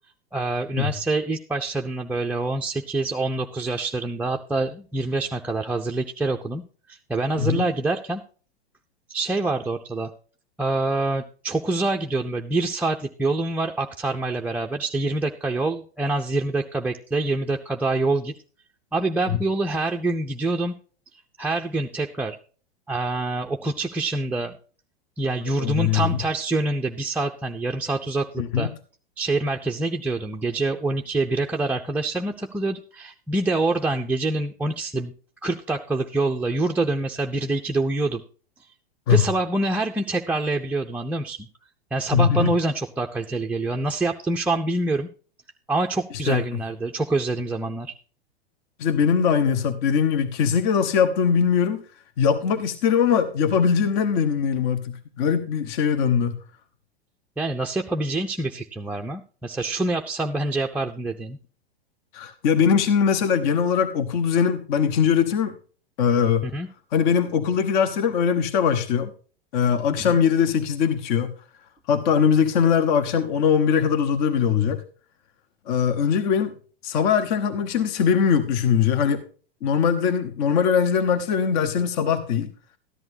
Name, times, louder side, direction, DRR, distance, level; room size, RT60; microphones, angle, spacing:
voice 1, 0.3-6.6 6.9-8.2 9.1-10.1 10.6-18.3 18.9-20.7 21.1-22.4 22.9-24.6 25.2-28.7 29.2-35.1 35.4-38.2 39.1-41.5 41.9-45.1 45.7-47.9 57.4-61.4 66.4-66.7 70.0-70.1, right 2 dB, 5° right, 1 dB, 0.4 m, -26 dB
voice 2, 25.6-26.2 28.4-28.7 39.1-39.3 42.1-42.5 46.3-46.4 48.8-51.8 52.2-56.3 62.1-65.5 66.0-66.5 66.9-69.1 69.5-71.3 71.9-74.8 75.7-76.5 76.8-79.2 79.6-82.5, left 7 dB, 50° left, 11 dB, 1.1 m, -21 dB
13.5 x 10.5 x 2.7 m, 0.40 s
figure-of-eight pair, 100°, 31 cm